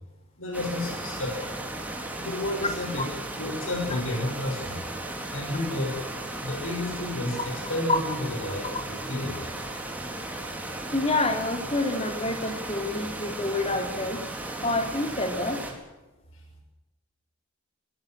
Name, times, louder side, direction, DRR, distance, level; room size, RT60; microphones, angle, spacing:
voice 1, 0.4-1.5 2.2-3.1 3.4-4.8 5.3-6.0 6.4-9.4 16.3-16.4, left 1 dB, 70° left, 1 dB, 6.0 m, -31 dB
sound 1, 0.5-15.7, right 1 dB, 5° right, 4.2 m, -36 dB
voice 2, 10.9-14.2 14.6-15.6, left 2 dB, 25° left, 5 dB, 3.7 m, -27 dB
24.0 x 20.5 x 7.7 m, 1.1 s
head